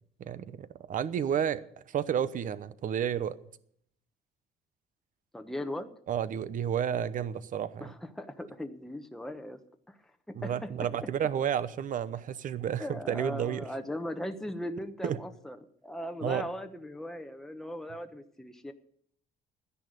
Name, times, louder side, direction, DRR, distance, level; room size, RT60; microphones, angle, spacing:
voice 1, 0.2-1.6 1.9-3.4 6.1-7.9 10.3-13.7 15.0-15.2 16.2-16.5, right 9 dB, 50° right, 0.9 m, -31 dB
voice 2, 5.3-5.9 7.8-9.6 9.9-10.0 10.3-10.9 12.8-15.6 15.8-18.7, left 1 dB, ahead, 1.1 m, -38 dB
12.5 x 10.5 x 6.5 m
cardioid pair, 110°, 17 cm